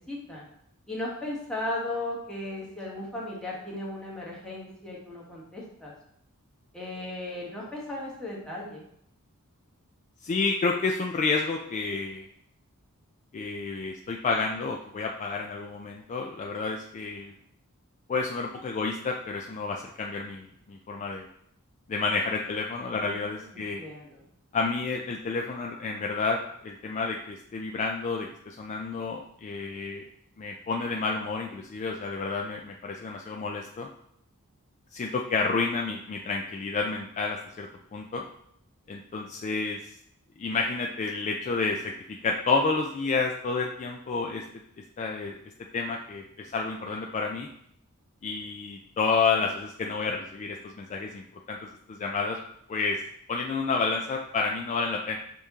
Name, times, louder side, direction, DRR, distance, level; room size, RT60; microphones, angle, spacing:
voice 1, 0.1-0.5 0.9-5.9 6.7-8.8 22.9-23.2 23.5-24.2, left 1 dB, 5° left, -5 dB, 1.1 m, -36 dB
voice 2, 10.2-12.3 13.3-17.3 18.1-21.3 21.9-23.8 24.5-30.0 30.4-33.9 34.9-38.2 38.9-39.8 40.4-41.9 42.2-44.4 45.0-45.3 45.7-47.5 48.2-52.4 52.7-53.0 53.3-55.2, left 4 dB, 35° left, 1 dB, 0.3 m, -30 dB
5.2 x 2.8 x 3.5 m, 0.72 s
head